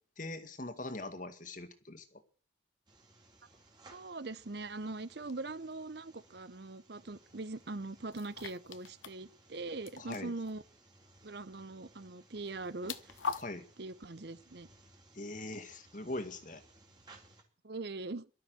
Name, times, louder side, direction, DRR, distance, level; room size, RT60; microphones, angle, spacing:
voice 1, 0.2-2.2 10.0-10.3 13.4-13.7 15.1-16.6, left 2 dB, 40° left, 2.1 m, -42 dB
sound 1, 2.9-17.4, right 2 dB, 20° right, 3.7 m, -61 dB
voice 2, 3.9-10.6 11.2-13.2 13.8-14.7 17.6-18.3, right 3 dB, 55° right, 0.8 m, -42 dB
sound 2, 5.3-5.4 8.1-9.2 9.5-9.6 9.9-10.5 12.5-13.4, left 5 dB, 85° left, 1.0 m, -41 dB
18.0 x 12.5 x 6.3 m
head